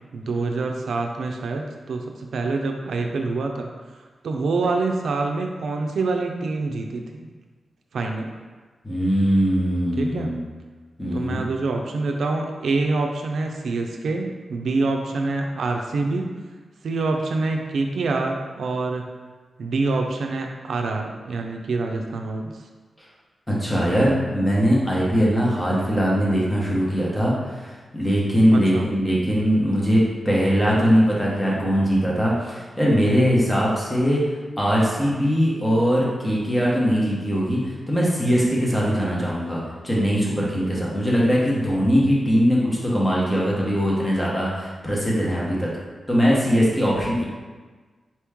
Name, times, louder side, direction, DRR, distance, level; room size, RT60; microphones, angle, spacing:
voice 1, 0.1-3.7 4.2-7.3 7.9-8.3 10.0-10.3 11.1-16.3 16.8-19.0 19.6-22.5 28.5-28.9, right 3 dB, 80° right, 3 dB, 0.4 m, -26 dB
voice 2, 8.8-10.4 11.0-11.4 23.5-34.3 34.6-45.7 46.1-47.2, equal, 10° left, -5 dB, 1.0 m, -21 dB
4.3 x 3.0 x 3.5 m, 1.4 s
wide cardioid pair, 145°, 0 cm